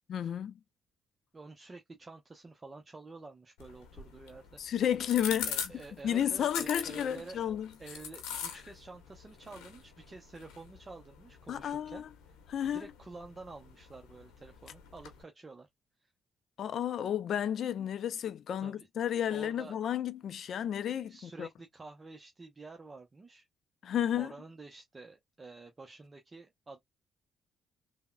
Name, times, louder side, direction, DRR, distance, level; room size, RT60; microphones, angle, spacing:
voice 1, 0.1-0.6 4.6-5.5 6.0-7.7 11.5-12.1 12.5-12.9 16.6-21.5 23.8-24.3, left 10 dB, 65° left, 0.4 m, -32 dB
voice 2, 1.3-4.6 5.5-7.4 7.8-12.0 12.3-12.4 12.6-15.7 16.0-16.1 18.6-18.9 19.3-19.8 21.1-23.5 24.2-26.8, right 3 dB, 30° right, 0.6 m, -49 dB
sound 1, 3.6-15.2, left 8 dB, 85° left, 0.8 m, -44 dB
3.5 x 2.1 x 2.2 m
supercardioid pair, 55°, 0 cm